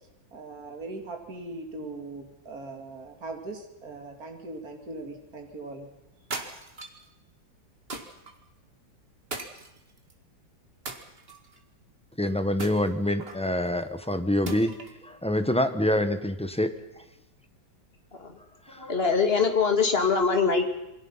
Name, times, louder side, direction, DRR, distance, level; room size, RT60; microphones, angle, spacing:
voice 1, 0.3-5.9, right 2 dB, 50° right, 3 dB, 3.2 m, -40 dB
sound 1, 6.3-7.1 7.9-8.3 9.3-10.1 10.9-11.6 12.6-13.5 14.5-15.0, right 2 dB, 30° right, 2.1 m, -38 dB
voice 2, 12.2-14.7 15.0-17.0 18.7-18.8, left 1 dB, 5° left, 9 dB, 0.9 m, -26 dB
voice 3, 18.8-20.7, left 5 dB, 30° left, 5 dB, 2.6 m, -23 dB
28.0 x 22.5 x 5.7 m, 0.93 s
omnidirectional pair, 2.0 m